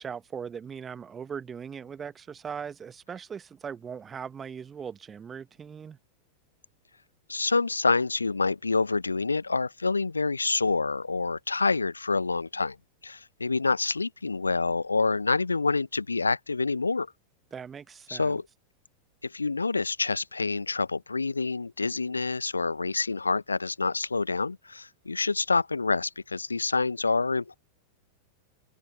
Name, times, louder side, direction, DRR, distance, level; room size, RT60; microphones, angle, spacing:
voice 1, 0.0-6.0 17.5-18.4, right 7 dB, 20° right, 0.9 m, -39 dB
voice 2, 7.3-12.8 13.0-17.1 18.1-18.4 19.2-27.6, left 3 dB, 80° left, 0.4 m, -27 dB
figure-of-eight pair, 90°, 0 cm